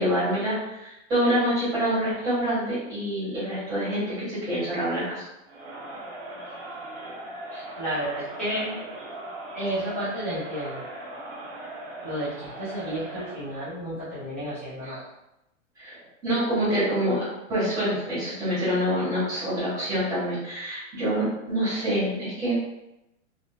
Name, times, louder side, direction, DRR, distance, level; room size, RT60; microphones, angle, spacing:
voice 1, 0.0-5.2 14.8-14.9 15.8-17.2 17.5-22.6, equal, 10° right, -12 dB, 1.0 m, -26 dB
Crowd, 5.4-13.5, right 1 dB, 40° right, 0.8 m, -39 dB
voice 2, 7.5-8.8 9.5-10.9 12.0-15.0, right 1 dB, 10° left, -15 dB, 0.4 m, -32 dB
3.5 x 2.3 x 2.3 m, 0.89 s
hypercardioid pair, 170°, 41 cm